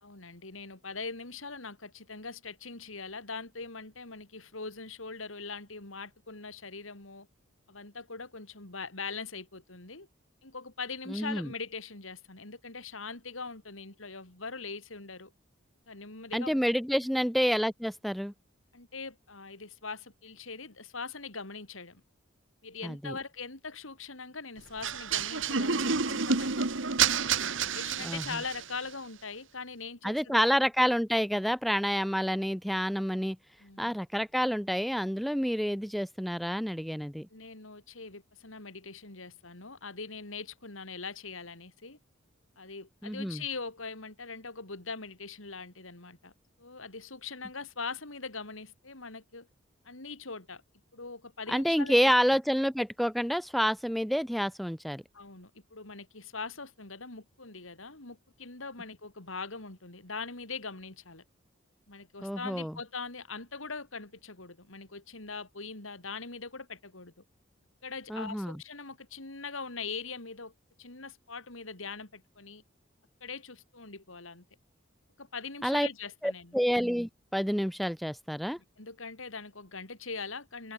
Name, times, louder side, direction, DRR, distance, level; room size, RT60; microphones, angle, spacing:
voice 1, 0.0-7.3 7.7-10.1 10.4-15.3 15.9-16.6 18.7-22.0 22.6-26.7 27.6-30.4 33.6-34.0 37.3-42.0 42.6-46.3 46.6-49.5 49.9-50.6 50.9-52.4 55.1-61.2 61.9-67.2 67.8-70.5 70.8-72.6 73.2-74.4 75.2-76.6 78.8-80.7, left 4 dB, 90° left, 3.6 m, -42 dB
voice 2, 11.1-11.5 16.3-18.3 22.8-23.1 28.0-28.2 30.0-33.4 33.8-37.3 43.0-43.4 51.5-55.0 62.2-62.7 68.1-68.6 75.6-75.9 76.2-78.6, equal, ahead, 0.4 m, -28 dB
sound 1, 24.8-28.8, right 6 dB, 75° right, 1.8 m, -29 dB
head